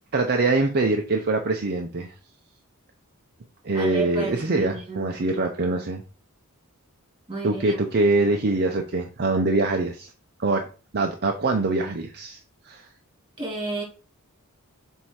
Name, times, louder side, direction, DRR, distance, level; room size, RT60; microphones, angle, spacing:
voice 1, 0.1-2.1 3.6-6.0 7.4-10.1 10.4-10.6 10.9-12.4 12.6-12.8, right 3 dB, 45° right, 0.7 m, -23 dB
voice 2, 3.7-5.1 7.3-7.8 13.4-13.8, right 3 dB, 25° right, 3.2 m, -32 dB
7.5 x 2.7 x 4.7 m
head